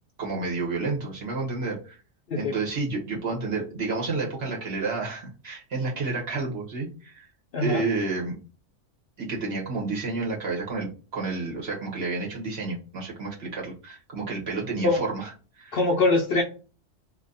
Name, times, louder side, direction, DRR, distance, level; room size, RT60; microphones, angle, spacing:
voice 1, 0.2-2.0 2.3-7.3 7.6-8.4 9.2-15.3 15.6-15.8, right 3 dB, 50° right, -2 dB, 1.3 m, -30 dB
voice 2, 15.7-16.4, left 3 dB, 60° left, 0 dB, 0.7 m, -23 dB
2.8 x 2.7 x 3.8 m, 0.35 s
omnidirectional pair, 1.4 m